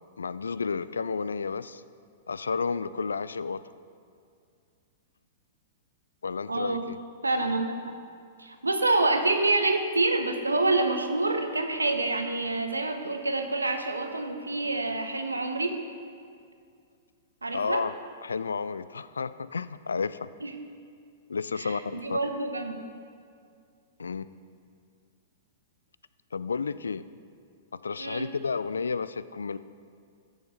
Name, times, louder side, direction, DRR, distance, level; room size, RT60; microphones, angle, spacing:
voice 1, 0.2-1.8 2.3-3.6 6.2-7.0 17.5-17.9 18.2-20.3 21.3-22.2 24.0-24.3 26.3-27.0 27.7-29.6, left 5 dB, 75° left, 16 dB, 0.3 m, -31 dB
voice 2, 6.5-6.8 7.2-7.9 8.4-15.7 17.4-17.8 20.4-20.5 21.6-22.9 28.0-28.3, right 2 dB, 80° right, 6 dB, 0.9 m, -27 dB
14.0 x 7.0 x 4.1 m, 2.3 s
figure-of-eight pair, 105°, 0 cm